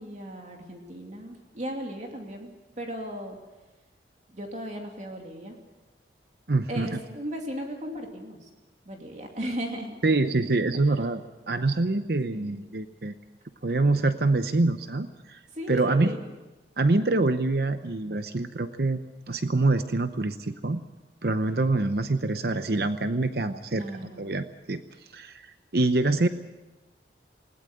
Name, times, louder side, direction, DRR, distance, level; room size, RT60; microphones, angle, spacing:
voice 1, 0.0-2.5 2.8-3.4 4.3-5.6 6.7-8.5 8.9-10.0 12.3-12.7 15.5-16.2 23.7-24.4, equal, 40° right, 2 dB, 2.7 m, -36 dB
voice 2, 6.5-7.0 10.0-11.2 11.5-13.1 13.6-15.4 15.7-16.1 16.8-19.0 19.3-20.8 21.2-23.8 24.2-24.8 25.1-25.5 25.7-26.3, right 2 dB, 60° right, 10 dB, 0.8 m, -25 dB
20.0 x 19.0 x 7.9 m, 1.1 s
head